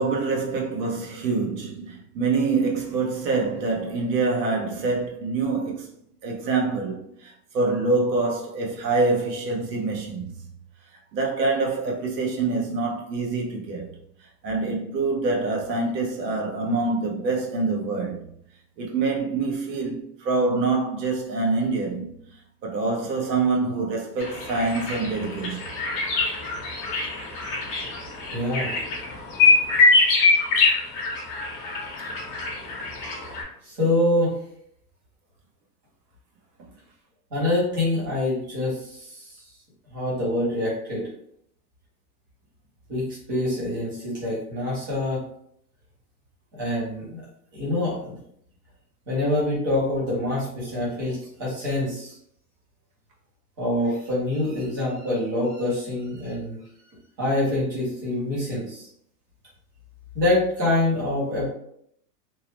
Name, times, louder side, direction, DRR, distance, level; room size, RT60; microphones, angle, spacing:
voice 1, 0.0-5.9 6.2-10.3 11.1-13.8 14.4-18.2 18.8-22.2 22.6-25.6, right 3 dB, 85° right, 1.0 m, -25 dB
sound 1, 24.2-33.4, left 3 dB, 30° left, 0.7 m, -24 dB
voice 2, 28.3-28.7 33.6-34.4 37.3-39.4 39.9-41.1 42.9-45.2 46.5-47.2 47.5-48.1 49.1-52.2 53.6-56.6 57.2-58.9 60.1-61.5, left 1 dB, 15° right, 0.3 m, -25 dB
2.9 x 2.0 x 3.0 m
supercardioid pair, 150°, 49 cm